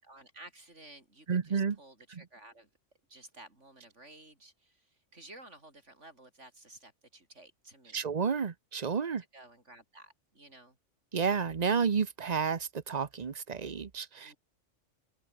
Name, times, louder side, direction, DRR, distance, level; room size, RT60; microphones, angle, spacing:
voice 1, 0.0-2.7 3.1-8.0 9.3-10.8 14.2-14.4, right 2 dB, 70° right, 7.5 m, -54 dB
voice 2, 1.3-1.8 2.1-2.2 7.9-9.2 11.1-14.3, right 6 dB, 35° right, 0.9 m, -31 dB
omnidirectional pair, 1.3 m